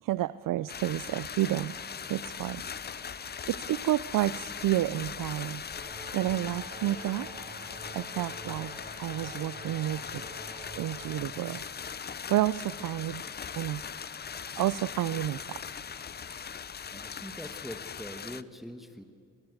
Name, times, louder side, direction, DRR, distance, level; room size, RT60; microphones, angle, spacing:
voice 1, 0.0-1.8 2.1-2.6 3.1-5.6 6.1-7.3 7.9-8.7 9.0-11.6 12.3-13.2 13.5-13.8 14.5-15.6, right 14 dB, 85° right, 16 dB, 0.5 m, -30 dB
sound 1, 0.7-18.4, left 7 dB, 30° left, 0.5 m, -40 dB
sound 2, 5.7-11.2, right 2 dB, 25° right, 3.1 m, -47 dB
voice 2, 16.5-19.0, equal, ahead, 6 dB, 1.2 m, -44 dB
23.0 x 18.5 x 8.0 m, 2.4 s
cardioid pair, 90°, 32 cm